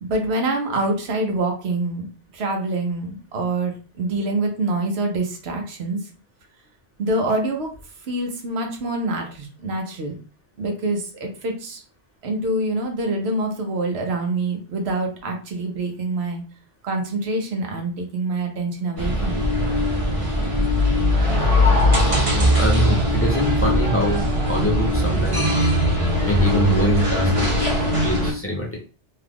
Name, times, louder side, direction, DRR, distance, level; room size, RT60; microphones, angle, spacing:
voice 1, 0.0-2.1 2.3-6.0 7.0-7.7 8.1-10.2 10.6-11.8 12.2-16.4 16.8-19.5, right 2 dB, 70° right, 2 dB, 1.1 m, -25 dB
sound 1, 19.0-28.3, equal, 30° right, 0.9 m, -20 dB
voice 2, 22.6-25.7 26.2-27.5 28.0-28.7, left 1 dB, 15° left, -3 dB, 0.7 m, -25 dB
2.9 x 2.4 x 3.4 m, 0.37 s
omnidirectional pair, 1.2 m